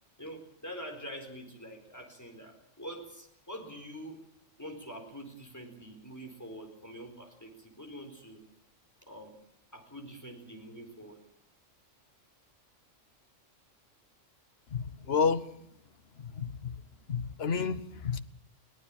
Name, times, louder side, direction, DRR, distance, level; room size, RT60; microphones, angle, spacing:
voice 1, 0.2-4.2 4.6-8.4 9.1-9.4 9.7-11.2, equal, 15° left, 4.5 m, -45 dB
voice 2, 14.7-15.5 16.2-16.8 17.1-18.2, left 6 dB, 55° left, 1.2 m, -30 dB
22.5 x 18.0 x 7.5 m
omnidirectional pair, 1.3 m